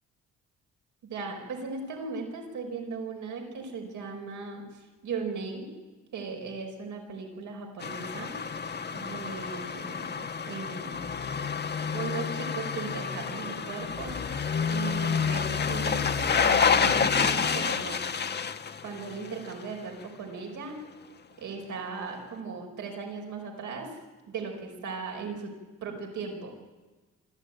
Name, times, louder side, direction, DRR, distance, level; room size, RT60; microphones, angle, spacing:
voice 1, 1.1-4.6 5.0-5.7 6.1-8.3 8.9-11.0 11.9-14.2 14.7-18.0 18.8-20.8 21.4-23.9 24.3-25.5 25.8-26.5, right 4 dB, 75° right, 3 dB, 5.0 m, -37 dB
sound 1, 7.8-19.7 20.0-20.1, left 6 dB, 35° left, 1.1 m, -29 dB
25.5 x 13.0 x 9.1 m, 1.2 s
cardioid pair, 90°, 30 cm